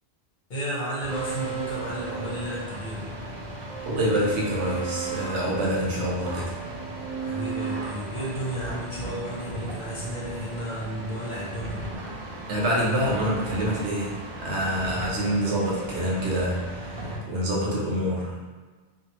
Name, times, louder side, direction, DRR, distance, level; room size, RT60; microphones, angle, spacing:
voice 1, 0.5-3.1 7.2-11.8, equal, 50° left, -7 dB, 0.9 m, -33 dB
sound 1, 1.0-17.2, right 3 dB, 50° right, 0.7 m, -35 dB
voice 2, 3.9-6.5 12.5-18.4, equal, 90° right, -4 dB, 1.0 m, -26 dB
2.6 x 2.4 x 2.9 m, 1.4 s
omnidirectional pair, 1.1 m